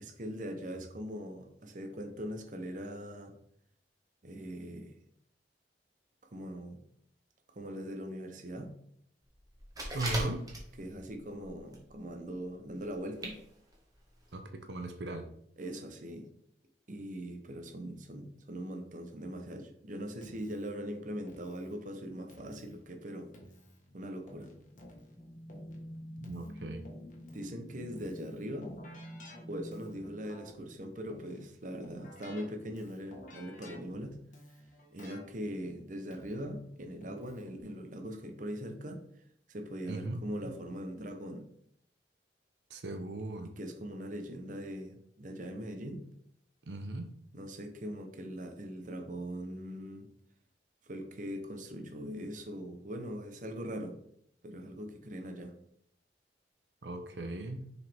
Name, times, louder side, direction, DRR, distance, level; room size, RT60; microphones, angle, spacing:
voice 1, 0.0-3.3 4.2-5.0 6.2-6.8 7.5-8.7 10.8-13.4 15.6-16.3 16.9-23.3 23.9-24.5 27.3-28.7 29.5-34.2 34.9-39.0 39.5-41.4 42.9-43.0 43.6-46.0 47.3-50.1 50.8-54.0 54.4-55.5, equal, 45° right, 5 dB, 0.8 m, -41 dB
sound 1, 9.5-11.0 11.4-11.9 12.1-12.2 12.9-13.0 13.2-13.4 13.7-13.8 14.3-14.4, right 1 dB, 20° right, 1.5 m, -38 dB
voice 2, 9.9-10.5 14.3-15.2 26.2-26.9 39.9-40.5 42.7-43.5 46.7-47.1 56.8-57.7, right 2 dB, 75° right, 6 dB, 0.7 m, -38 dB
Keyboard (musical), 20.2-37.6, left 1 dB, 45° left, 1.4 m, -55 dB
sound 2, 24.6-31.0, equal, 15° left, 0.5 m, -48 dB
6.4 x 5.0 x 3.4 m, 0.70 s
head